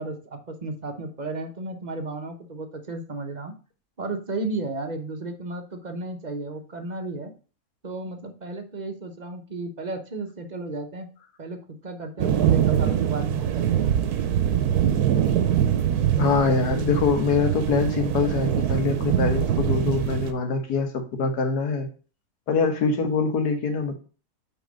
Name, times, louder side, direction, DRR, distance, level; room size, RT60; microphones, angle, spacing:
voice 1, 0.0-3.5 4.0-7.3 7.8-11.1 11.4-13.9, right 2 dB, 35° right, 6 dB, 0.8 m, -33 dB
sound 1, 12.2-20.3, right 10 dB, 80° right, 1.3 m, -23 dB
voice 2, 16.2-21.9 22.5-24.0, left 4 dB, 85° left, 5 dB, 1.8 m, -24 dB
8.2 x 3.7 x 5.2 m, 0.37 s
omnidirectional pair, 1.7 m